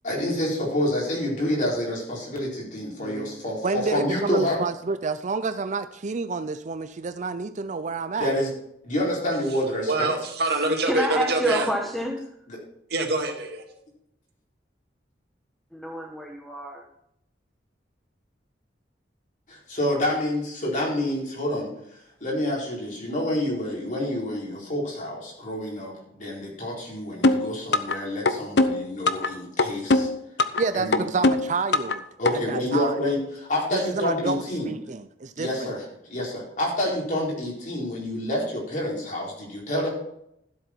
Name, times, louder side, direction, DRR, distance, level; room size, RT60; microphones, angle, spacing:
voice 1, 0.0-4.6 8.2-8.5 8.8-10.1 12.5-12.6 19.5-21.7 22.2-30.1 30.7-31.0 32.2-34.7 35.4-39.9, left 1 dB, 45° left, -3 dB, 4.3 m, -28 dB
voice 2, 3.0-8.3 30.6-32.0 32.3-33.0 33.7-35.7, right 4 dB, 45° right, 12 dB, 0.5 m, -29 dB
voice 3, 9.9-11.7 12.9-13.6, right 2 dB, 65° right, 3 dB, 2.1 m, -25 dB
voice 4, 10.8-12.3 15.7-16.8, equal, ahead, 0 dB, 1.1 m, -28 dB
sound 1, 27.2-28.0 28.3-29.3 29.6-30.6 30.9-32.0 32.3-32.4, left 2 dB, 75° left, 0.8 m, -20 dB
13.0 x 7.8 x 4.5 m, 0.78 s
head